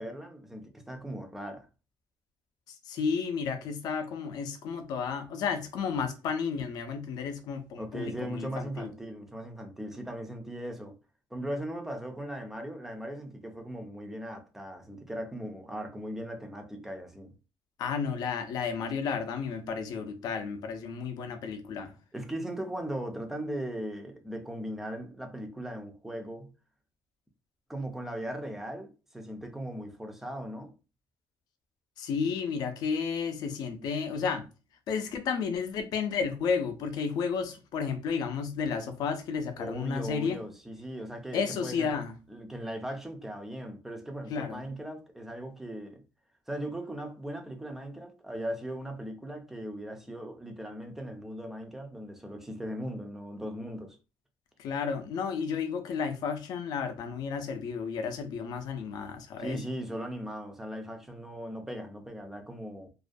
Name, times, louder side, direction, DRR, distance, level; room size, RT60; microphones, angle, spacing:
voice 1, 0.0-1.7 7.8-11.0 11.3-17.3 22.1-26.5 27.7-30.7 39.6-42.0 42.3-46.0 46.5-54.0 59.4-62.9, right 1 dB, 5° right, 0.3 m, -38 dB
voice 2, 2.7-8.9 17.8-21.9 32.0-34.4 34.9-40.4 41.3-42.1 44.3-44.6 54.6-59.6, left 6 dB, 60° left, 0.4 m, -32 dB
2.3 x 2.1 x 2.5 m
cardioid pair, 175°, 8 cm